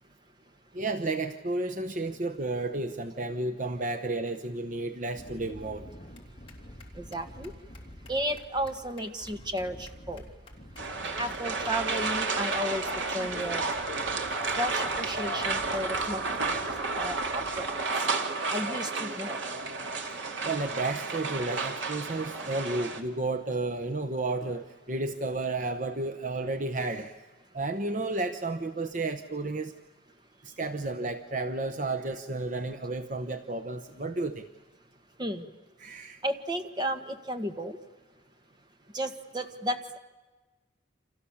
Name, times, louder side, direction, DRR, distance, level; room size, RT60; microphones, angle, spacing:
voice 1, 0.7-5.9 16.4-16.8 20.4-27.2 27.5-29.7 30.4-34.4 35.8-36.2, right 2 dB, 40° right, 8 dB, 0.9 m, -32 dB
sound 1, 5.2-17.8, left 1 dB, 30° left, 3.1 m, -48 dB
voice 2, 6.9-7.5 8.1-10.2 11.2-13.7 14.5-17.7 18.0-18.1 18.5-19.4 35.2-35.5 36.2-37.8 38.9-40.0, equal, 20° right, 6 dB, 1.6 m, -33 dB
sound 2, 10.8-23.0, right 3 dB, 70° right, 2.6 m, -32 dB
29.5 x 27.0 x 7.2 m, 1.2 s
head